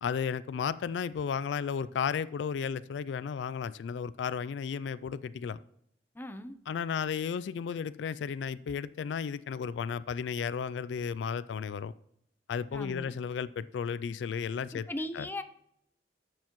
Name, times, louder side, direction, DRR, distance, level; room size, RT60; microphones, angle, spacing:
voice 1, 0.0-5.6 6.7-11.9 12.5-14.9 15.1-15.3, left 6 dB, 75° left, 0.3 m, -34 dB
voice 2, 6.1-6.6 12.7-13.1 14.7-15.4, left 1 dB, 10° left, 0.6 m, -38 dB
11.5 x 7.8 x 3.1 m
head